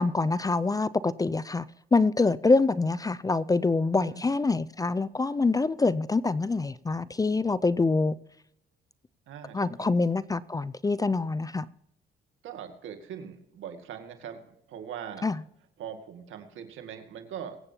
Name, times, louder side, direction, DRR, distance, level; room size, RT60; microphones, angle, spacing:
voice 1, 0.0-1.7 1.9-8.2 9.5-11.7 15.2-15.4, left 3 dB, 20° left, 0.4 m, -25 dB
voice 2, 9.3-10.0 12.4-15.4 15.8-17.6, right 8 dB, 80° right, 2.0 m, -41 dB
23.0 x 8.6 x 2.9 m
cardioid pair, 90°, 20 cm